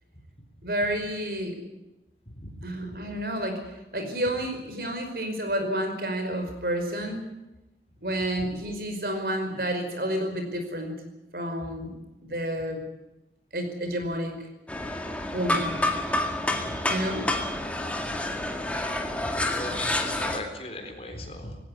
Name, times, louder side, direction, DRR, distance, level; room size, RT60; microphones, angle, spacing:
voice 1, 0.6-1.6 2.6-3.6 3.9-7.2 8.0-11.0 11.3-12.8 13.5-14.5 15.3-15.8 16.9-17.3, equal, 60° right, 6 dB, 5.2 m, -30 dB
sound 1, 14.7-20.4, left 1 dB, 10° left, 2.0 m, -28 dB
voice 2, 19.2-21.6, left 1 dB, 35° left, 5 dB, 3.9 m, -38 dB
19.0 x 17.5 x 9.9 m, 0.97 s
head